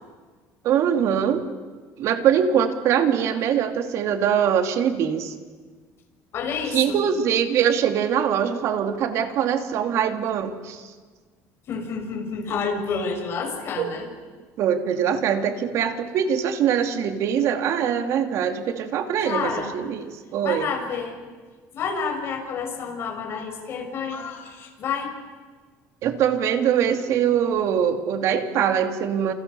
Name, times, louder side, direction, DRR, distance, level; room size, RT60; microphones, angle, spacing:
voice 1, 0.6-1.5 2.0-5.3 6.7-10.9 13.8-13.9 14.6-20.7 26.0-29.3, right 8 dB, 55° right, 6 dB, 2.8 m, -23 dB
voice 2, 6.3-7.0 11.7-14.1 19.2-19.7 20.4-21.2 21.7-25.1, left 5 dB, 45° left, 2 dB, 6.7 m, -29 dB
29.0 x 28.5 x 7.0 m, 1.4 s
cardioid pair, 145°, 6 cm